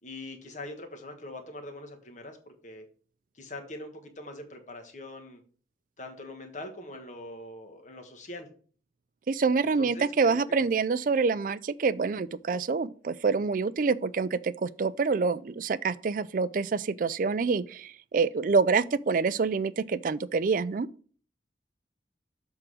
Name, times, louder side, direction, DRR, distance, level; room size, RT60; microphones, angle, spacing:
voice 1, 0.0-2.9 3.3-5.4 6.0-8.5 9.8-10.6, left 1 dB, 45° left, 1.4 m, -43 dB
voice 2, 9.3-20.9, right 4 dB, 50° right, 0.4 m, -26 dB
7.5 x 3.7 x 6.2 m
head